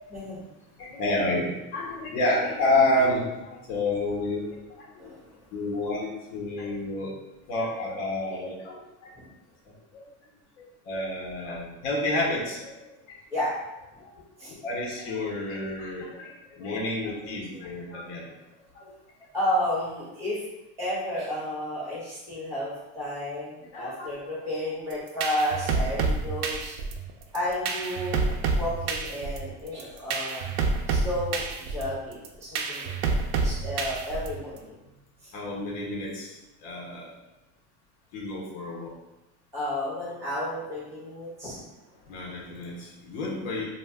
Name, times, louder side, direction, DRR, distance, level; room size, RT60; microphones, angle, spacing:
voice 1, 0.1-0.4 5.0-5.4 13.3-13.5 14.4-14.5 19.3-20.4 20.8-26.7 27.3-30.5 30.9-34.7 35.2-35.3 39.5-41.6, left 1 dB, 10° right, -9 dB, 1.1 m, -32 dB
voice 2, 0.8-4.5 5.0-5.1 5.5-7.1 7.5-9.1 9.9-10.0 10.6-12.8 13.1-13.2 14.0-14.1 14.6-18.2 18.7-18.9 23.7-24.1 35.3-37.1 38.1-38.9 42.1-43.6, left 1 dB, 65° left, -3 dB, 0.8 m, -29 dB
sound 1, 24.9-34.6, right 4 dB, 80° right, 0.5 m, -29 dB
2.5 x 2.1 x 3.4 m, 1.0 s
cardioid pair, 175°, 34 cm